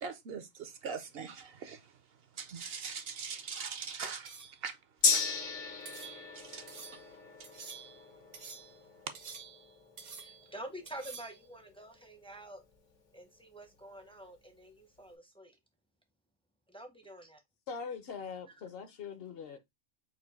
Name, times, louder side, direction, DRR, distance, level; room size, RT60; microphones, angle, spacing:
voice 1, 0.0-1.8 2.4-4.3 4.6-4.7 5.1-5.2 6.4-6.8, right 6 dB, 65° right, 0.7 m, -41 dB
sound 1, 4.3-4.6 5.1-5.3 5.9-6.4 6.7-7.1 7.4-8.0 8.3-8.8 9.1-9.7 10.0-10.5 10.9-11.4, right 5 dB, 80° right, 1.3 m, -48 dB
Gong, 5.0-12.8 13.1-13.2, left 5 dB, 85° left, 1.5 m, -37 dB
voice 2, 10.1-12.6 13.1-15.6 16.7-17.4, right 1 dB, 5° left, 0.4 m, -48 dB
voice 3, 17.7-19.6, left 6 dB, 60° left, 0.8 m, -42 dB
4.4 x 2.5 x 3.9 m
omnidirectional pair, 1.2 m